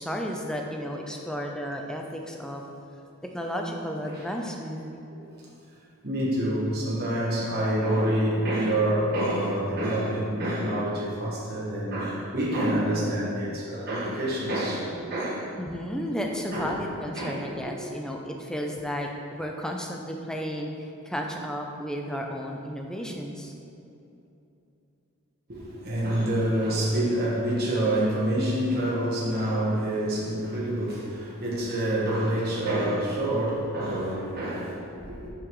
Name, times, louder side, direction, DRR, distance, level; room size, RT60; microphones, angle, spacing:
voice 1, 0.0-2.6 3.3-4.9 15.6-23.5, equal, 5° left, 1 dB, 0.4 m, -33 dB
voice 2, 6.0-15.5 16.5-16.8 17.1-17.4 25.5-35.3, right 1 dB, 45° right, -6 dB, 1.2 m, -27 dB
6.1 x 6.0 x 3.1 m, 2.8 s
head